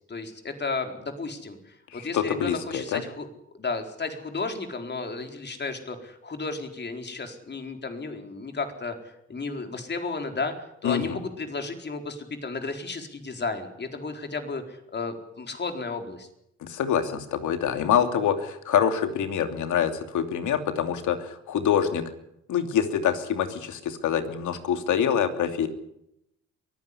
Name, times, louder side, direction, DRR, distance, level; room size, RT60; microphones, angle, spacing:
voice 1, 0.1-3.3 3.5-8.9 9.3-10.5 10.8-16.3, left 3 dB, 35° left, 5 dB, 4.3 m, -33 dB
voice 2, 1.9-3.0 10.8-11.2 16.6-22.1 22.5-25.7, left 8 dB, 75° left, 7 dB, 2.8 m, -25 dB
23.0 x 15.5 x 9.8 m, 0.80 s
cardioid pair, 90°, 30 cm